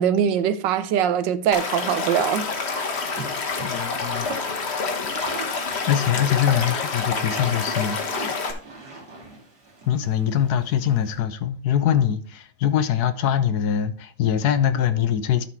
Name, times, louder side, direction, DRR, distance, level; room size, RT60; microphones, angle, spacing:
voice 1, 0.0-2.9, right 9 dB, 90° right, 1.4 m, -22 dB
Stream / Liquid, 1.5-8.5, left 4 dB, 40° left, 1.2 m, -27 dB
sound 1, 3.1-11.1, right 2 dB, 60° right, 2.8 m, -40 dB
voice 2, 3.6-4.6 5.0-8.0 9.9-15.4, left 9 dB, 70° left, 1.1 m, -23 dB
12.0 x 4.3 x 4.5 m
omnidirectional pair, 1.9 m